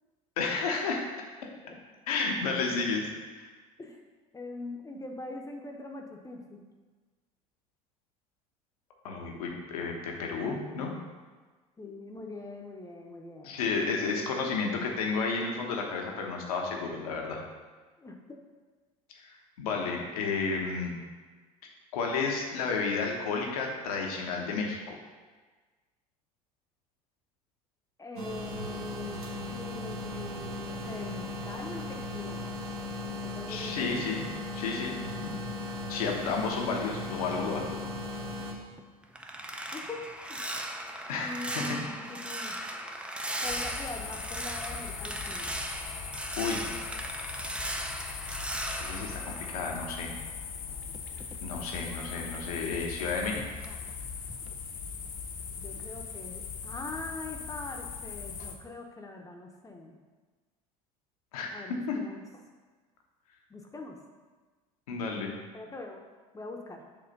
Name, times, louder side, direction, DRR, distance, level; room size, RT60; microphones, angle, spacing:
voice 1, 0.4-1.0 2.1-3.1 3.4-3.5 9.0-10.9 13.4-17.4 19.2-20.9 21.9-25.0 33.5-35.4 35.9-37.7 41.1-41.6 46.4-46.7 48.8-50.1 51.4-53.4 61.3-61.5 61.9-62.0 64.9-65.3, left 4 dB, 80° left, 1 dB, 1.2 m, -32 dB
voice 2, 4.3-6.6 11.8-13.6 18.0-18.4 28.0-32.4 33.0-33.9 39.7-40.4 41.2-42.6 43.4-45.5 55.6-60.0 61.5-62.2 63.5-64.0 65.5-66.0 66.3-66.8, left 2 dB, 20° left, 2 dB, 0.9 m, -42 dB
sound 1, 28.2-38.5, left 2 dB, 85° right, 1.2 m, -37 dB
sound 2, 38.6-50.3 50.6-53.3 53.6-53.9 54.3-54.5, right 1 dB, 5° right, 0.6 m, -38 dB
sound 3, 43.4-58.5, left 6 dB, 50° left, 0.9 m, -40 dB
7.1 x 3.3 x 5.3 m, 1.4 s
hypercardioid pair, 75°, 19 cm